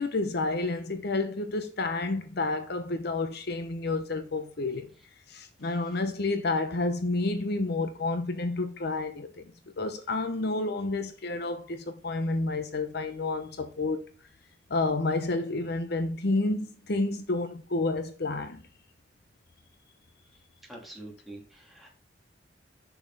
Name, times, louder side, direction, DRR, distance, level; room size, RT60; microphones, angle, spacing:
voice 1, 0.0-4.9 5.3-9.5 9.8-14.0 14.7-18.6, left 2 dB, 60° left, 0.9 m, -30 dB
voice 2, 20.7-22.0, right 1 dB, ahead, 2.9 m, -46 dB
7.3 x 7.1 x 4.1 m
head